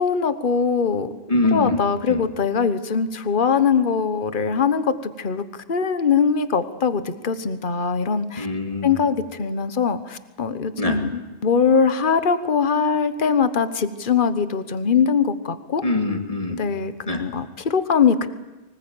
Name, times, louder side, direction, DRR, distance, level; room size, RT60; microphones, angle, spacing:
voice 1, 0.0-1.2 1.5-5.4 5.7-8.5 8.8-15.8 16.6-18.3, left 6 dB, 50° left, 12 dB, 1.3 m, -22 dB
voice 2, 1.3-1.8 2.1-2.2 8.4-9.1 10.8-11.0 15.8-16.6 17.1-17.2, left 2 dB, 35° left, 4 dB, 2.6 m, -23 dB
24.0 x 20.0 x 8.9 m, 1.1 s
omnidirectional pair, 1.1 m